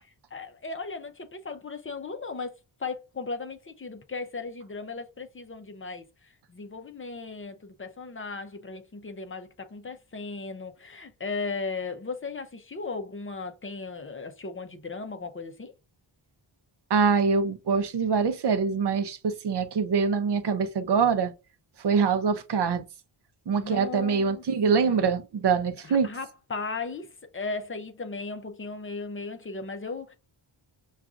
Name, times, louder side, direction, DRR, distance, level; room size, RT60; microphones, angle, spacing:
voice 1, 0.3-2.5 2.8-6.1 6.5-15.7 23.6-25.1 25.8-27.1 27.3-30.1, left 4 dB, 25° left, 0.5 m, -36 dB
voice 2, 16.9-21.3 21.8-22.8 23.5-26.1, right 5 dB, 55° right, 0.6 m, -24 dB
5.8 x 2.4 x 2.4 m
wide cardioid pair, 110°, 49 cm